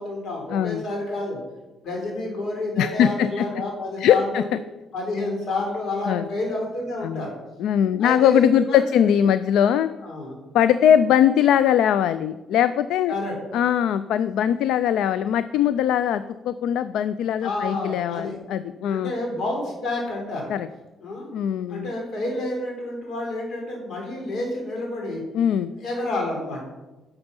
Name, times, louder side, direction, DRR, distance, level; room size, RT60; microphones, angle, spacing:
voice 1, 0.0-1.4 1.8-4.5 4.9-7.4 8.0-8.8 10.0-10.4 13.1-13.6 17.4-18.4 18.9-20.5 21.0-21.3 21.7-25.2 25.8-26.6, left 2 dB, 65° left, 0 dB, 3.8 m, -29 dB
voice 2, 0.5-0.8 2.8-3.5 4.0-4.4 6.1-6.3 7.0-7.2 7.6-9.9 10.5-13.1 13.5-19.1 20.5-20.7 21.3-21.9 25.3-25.7, left 9 dB, 85° left, 13 dB, 0.3 m, -21 dB
11.0 x 7.0 x 5.3 m, 1.1 s
cardioid pair, 90°, 0 cm